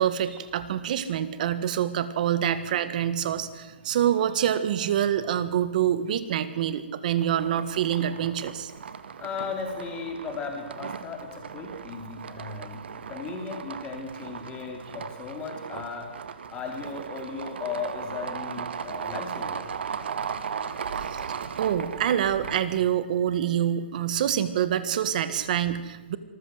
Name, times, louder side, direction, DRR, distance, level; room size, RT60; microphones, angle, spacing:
voice 1, 0.0-8.7 21.1-21.2 21.6-26.2, right 10 dB, 45° right, 13 dB, 1.7 m, -26 dB
sound 1, 7.2-22.8, right 7 dB, 70° right, 1.6 m, -37 dB
voice 2, 9.2-12.8 13.1-19.7, left 5 dB, 15° left, 3 dB, 3.4 m, -36 dB
26.0 x 14.5 x 8.0 m, 1.2 s
hypercardioid pair, 160°, 6 cm